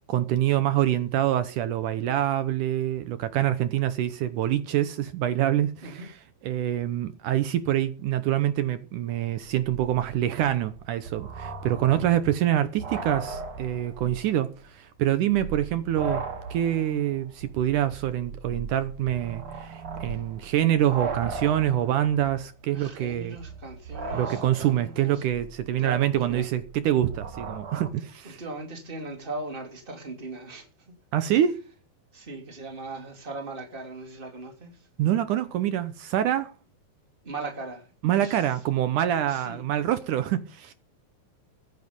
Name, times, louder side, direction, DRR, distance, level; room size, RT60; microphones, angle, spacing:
voice 1, 0.1-6.2 6.4-16.2 16.5-23.4 24.1-28.4 31.1-31.6 35.0-36.5 38.0-40.7, right 11 dB, 75° right, 2.1 m, -25 dB
sound 1, 9.2-9.3 9.4-14.3 14.6-14.7 15.2-27.9, right 4 dB, 45° right, 2.3 m, -38 dB
voice 2, 22.7-25.2 25.8-26.5 28.2-30.7 32.1-34.7 37.2-37.9 38.1-38.4 39.3-39.6, right 2 dB, 15° right, 2.7 m, -38 dB
15.0 x 9.6 x 5.3 m
omnidirectional pair, 4.2 m